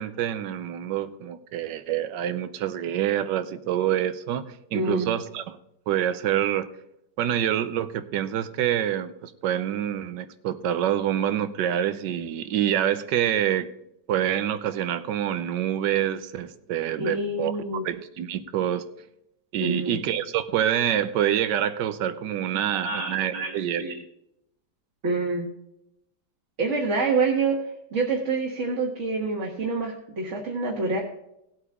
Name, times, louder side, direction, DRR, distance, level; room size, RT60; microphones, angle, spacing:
voice 1, 0.0-5.6 5.9-6.7 7.2-13.7 14.1-17.5 17.8-18.8 19.5-23.9, right 10 dB, 90° right, 12 dB, 1.4 m, -26 dB
voice 2, 4.7-5.1 17.0-17.8 19.6-20.0 22.8-23.9 25.0-25.5 26.6-31.0, right 3 dB, 45° right, -1 dB, 1.6 m, -27 dB
17.0 x 8.1 x 3.6 m, 0.82 s
omnidirectional pair, 1.9 m